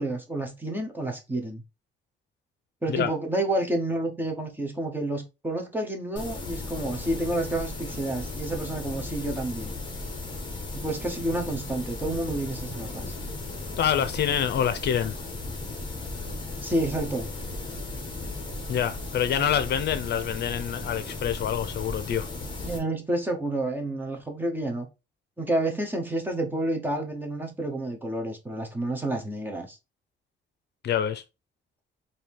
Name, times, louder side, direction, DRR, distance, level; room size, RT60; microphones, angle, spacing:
voice 1, 0.0-1.6 2.8-9.7 10.7-13.2 16.6-17.3 22.6-24.9 25.4-29.8, right 1 dB, 10° right, 0.8 m, -29 dB
sound 1, 6.2-22.8, left 2 dB, 25° left, 1.2 m, -36 dB
voice 2, 13.8-15.1 18.7-22.3 30.8-31.2, left 9 dB, 60° left, 0.5 m, -26 dB
4.6 x 2.8 x 3.5 m
wide cardioid pair, 170°, 19 cm